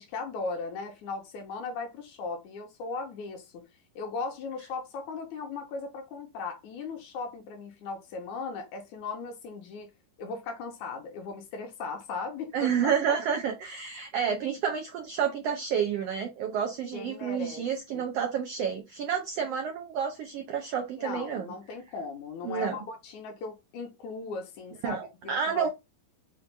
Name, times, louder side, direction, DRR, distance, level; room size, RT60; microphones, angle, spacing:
voice 1, 0.0-3.7 4.0-9.9 10.2-13.2 16.9-17.7 17.9-18.0 21.0-25.0 25.2-25.7, left 4 dB, 70° left, 2.3 m, -37 dB
voice 2, 12.5-21.5 22.4-22.8 24.8-25.7, right 7 dB, 80° right, 1.4 m, -30 dB
6.1 x 2.5 x 3.4 m
omnidirectional pair, 3.6 m